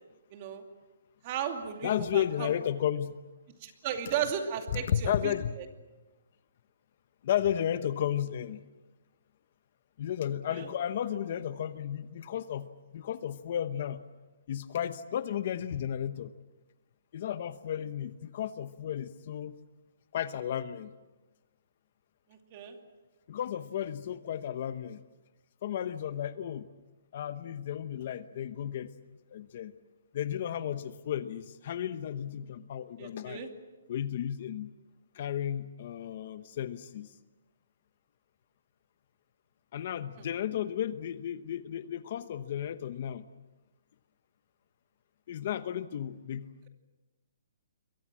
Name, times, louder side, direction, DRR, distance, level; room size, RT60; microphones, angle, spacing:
voice 1, 0.3-0.6 1.2-2.5 3.6-5.3 10.5-10.7 22.3-22.8 33.0-33.5, right 8 dB, 30° right, 5 dB, 2.6 m, -35 dB
voice 2, 1.8-3.1 4.7-5.6 7.2-8.6 10.0-14.0 14.5-16.3 17.1-19.6 20.1-20.9 23.3-25.0 25.6-26.7 27.1-28.9 29.3-29.7 30.1-33.4 33.9-34.7 35.1-37.1 39.7-43.3 45.3-46.5, left 10 dB, 40° left, 12 dB, 0.9 m, -33 dB
27.5 x 23.0 x 7.6 m, 1.1 s
hypercardioid pair, 170°, 0 cm